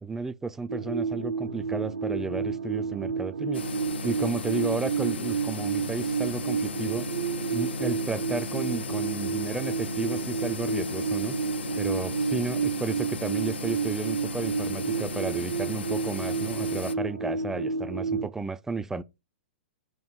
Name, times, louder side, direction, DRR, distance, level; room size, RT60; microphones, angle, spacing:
voice 1, 0.0-3.6 4.0-7.1 7.5-11.3 11.8-19.0, right 4 dB, 10° right, 0.4 m, -33 dB
sound 1, 0.7-18.3, right 5 dB, 80° right, 0.7 m, -30 dB
sound 2, 3.5-16.9, left 5 dB, 75° left, 0.5 m, -37 dB
5.3 x 4.7 x 5.2 m
figure-of-eight pair, 110°, 6 cm